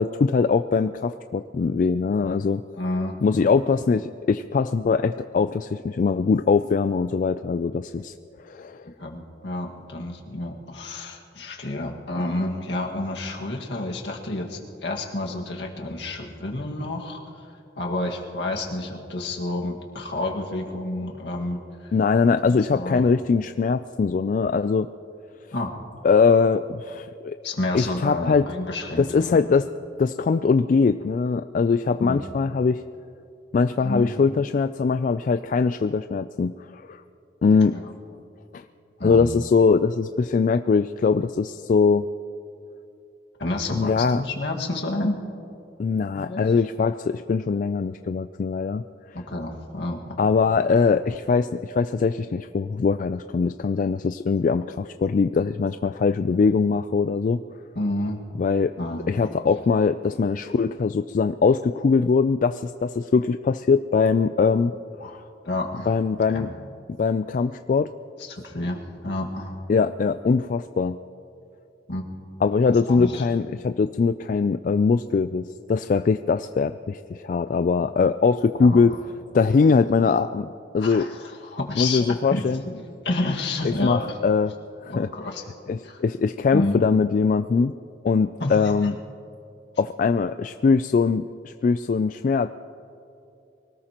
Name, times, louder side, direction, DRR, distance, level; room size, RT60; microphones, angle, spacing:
voice 1, 0.0-2.6 3.2-8.1 8.4-8.9 21.9-24.9 26.0-27.4 27.7-28.5 29.0-29.7 30.0-32.8 33.5-37.0 37.4-37.8 38.5-38.6 39.0-42.1 43.7-44.2 45.8-48.8 50.2-57.4 58.4-58.7 59.1-64.7 65.0-65.2 65.9-66.5 67.0-67.9 69.7-71.0 72.4-79.0 79.3-80.5 80.7-81.1 81.8-82.6 83.6-84.5 84.8-85.1 85.7-87.7 88.0-88.9 89.8-92.5, left 5 dB, 45° left, 10 dB, 0.3 m, -22 dB
voice 2, 2.8-3.2 9.0-17.2 17.8-21.9 22.5-23.1 25.5-25.7 27.4-29.4 32.0-32.2 33.8-34.1 37.7-37.9 39.0-39.3 43.4-45.2 46.2-46.4 49.1-50.2 57.8-58.2 58.8-59.0 65.0-65.2 65.4-65.9 66.3-66.5 68.3-69.6 71.9-72.1 72.9-73.2 78.6-78.8 80.8-81.2 81.5-84.2 84.9-85.4 85.8-86.0 86.5-86.8 88.4-88.7, left 2 dB, 70° left, 0 dB, 1.9 m, -29 dB
24.0 x 18.5 x 3.0 m, 2.7 s
head